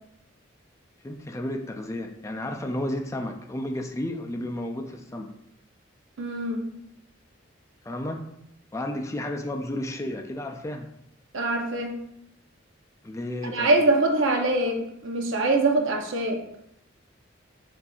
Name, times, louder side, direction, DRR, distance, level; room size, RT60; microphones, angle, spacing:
voice 1, 1.0-5.3 7.8-8.2 8.7-10.9 13.0-13.7, left 1 dB, 15° left, 4 dB, 0.3 m, -32 dB
voice 2, 6.2-6.7 11.3-11.9 13.4-16.4, right 2 dB, 90° right, 3 dB, 0.7 m, -24 dB
6.9 x 2.6 x 2.3 m, 0.75 s
head